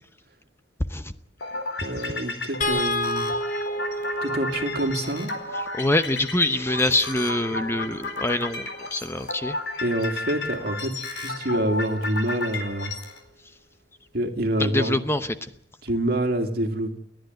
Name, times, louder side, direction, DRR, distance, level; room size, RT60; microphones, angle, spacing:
sound 1, 1.4-13.2, left 2 dB, 80° left, 4.3 m, -33 dB
voice 1, 1.8-3.3 4.2-5.3 9.8-12.9 14.1-15.0 15.8-17.0, right 1 dB, 60° right, 7 dB, 2.3 m, -26 dB
sound 2, 2.6-8.9 10.5-10.6 11.0-11.1, left 1 dB, 50° left, 3.0 m, -32 dB
voice 2, 5.7-8.7 8.9-9.6 14.6-15.3, left 2 dB, 15° left, 11 dB, 0.8 m, -24 dB
30.0 x 10.5 x 9.3 m, 0.71 s
head